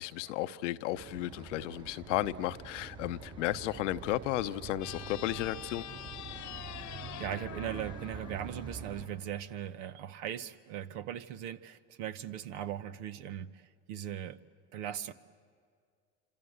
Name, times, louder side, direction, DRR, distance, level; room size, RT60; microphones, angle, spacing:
voice 1, 0.0-5.8, left 15 dB, 85° left, 0.8 m, -34 dB
sound 1, 0.9-9.1, right 5 dB, 55° right, 5.9 m, -46 dB
sound 2, 4.7-9.2, left 13 dB, 55° left, 1.0 m, -46 dB
voice 2, 6.8-14.4 14.7-15.1, right 10 dB, 80° right, 1.0 m, -39 dB
27.0 x 26.0 x 8.0 m
hypercardioid pair, 75°, 36 cm